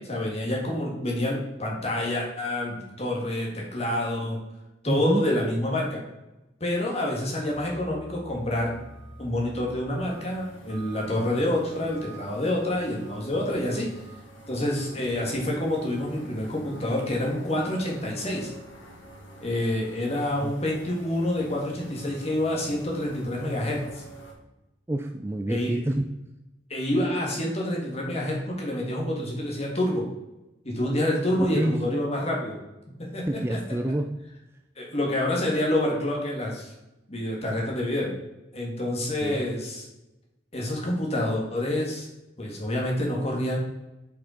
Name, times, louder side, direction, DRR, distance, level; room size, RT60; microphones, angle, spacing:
voice 1, 0.0-4.4 4.8-6.0 6.6-8.8 9.2-13.9 14.5-18.5 19.4-24.0 25.5-25.8 26.7-30.1 30.6-32.6 33.0-33.6 34.8-36.7 37.1-38.2 38.5-39.9 40.5-42.1 42.4-43.6, left 1 dB, 35° left, -1 dB, 1.8 m, -27 dB
voice 2, 4.9-5.3 20.4-20.5 24.9-26.0 31.4-31.9 33.3-34.1 39.2-39.5, right 1 dB, 15° right, 5 dB, 0.3 m, -27 dB
sound 1, 7.5-24.3, right 1 dB, 85° left, 1.9 m, -46 dB
6.0 x 5.3 x 5.0 m, 0.97 s
head